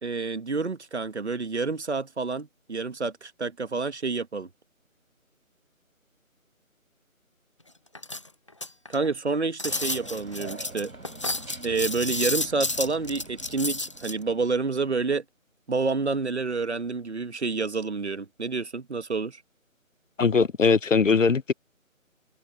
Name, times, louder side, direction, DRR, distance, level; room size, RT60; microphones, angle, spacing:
voice 1, 0.0-4.5 8.9-10.9 11.6-15.2 15.7-19.4, right 4 dB, 50° right, 1.6 m, -28 dB
sound 1, 8.0-9.1 9.6-14.1, left 2 dB, 20° left, 1.1 m, -31 dB
sound 2, 9.7-15.0, right 2 dB, 85° right, 5.2 m, -45 dB
voice 2, 20.2-21.5, left 5 dB, 65° left, 0.9 m, -20 dB
figure-of-eight pair, 170°, 42 cm